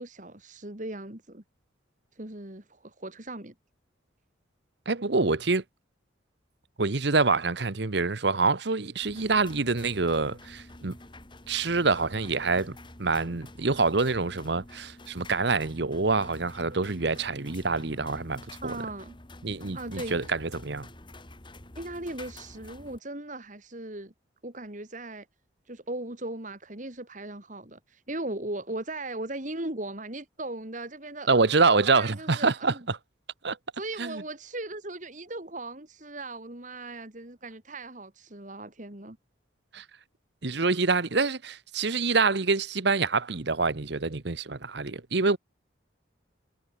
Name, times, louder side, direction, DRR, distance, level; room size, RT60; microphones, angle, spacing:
voice 1, 0.0-1.4 2.2-3.5 18.6-19.2 19.7-20.3 21.8-24.1 24.4-25.3 25.7-31.3 31.9-32.9 33.7-39.2, right 2 dB, 40° right, 2.5 m, -38 dB
voice 2, 4.9-5.6 6.8-10.9 11.5-18.8 19.4-20.9 31.3-33.0 33.4-33.6 34.0-34.2 39.7-39.8 40.4-45.4, right 4 dB, 60° right, 1.0 m, -26 dB
sound 1, 9.0-23.0, left 2 dB, 25° left, 2.1 m, -48 dB
head